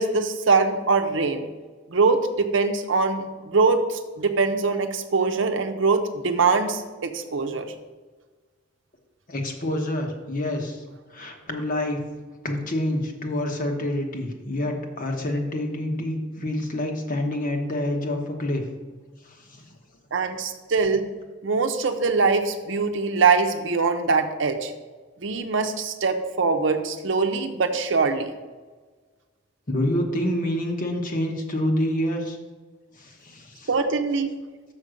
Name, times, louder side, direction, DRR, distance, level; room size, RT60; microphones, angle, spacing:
voice 1, 0.0-1.4 1.9-7.7 20.1-21.0 21.4-24.7 25.2-28.3 33.7-34.3, right 4 dB, 70° right, 6 dB, 0.7 m, -23 dB
voice 2, 9.3-10.8 11.1-12.0 12.4-18.6 19.2-19.6 29.7-32.4 32.9-33.7, left 1 dB, 45° left, 2 dB, 1.2 m, -27 dB
6.5 x 5.2 x 6.4 m, 1.3 s
head